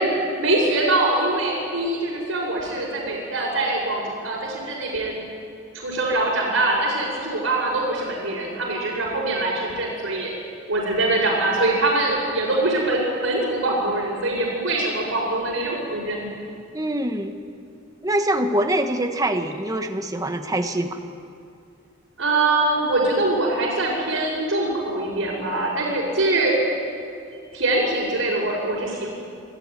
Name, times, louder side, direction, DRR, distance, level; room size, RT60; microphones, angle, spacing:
voice 1, 0.0-5.2 5.7-10.3 10.7-16.3 22.2-26.6 27.5-29.1, right 2 dB, 65° right, -8 dB, 6.1 m, -23 dB
voice 2, 16.7-17.4 18.0-21.0, right 1 dB, 15° right, 6 dB, 1.3 m, -24 dB
26.0 x 13.0 x 9.7 m, 2.4 s
head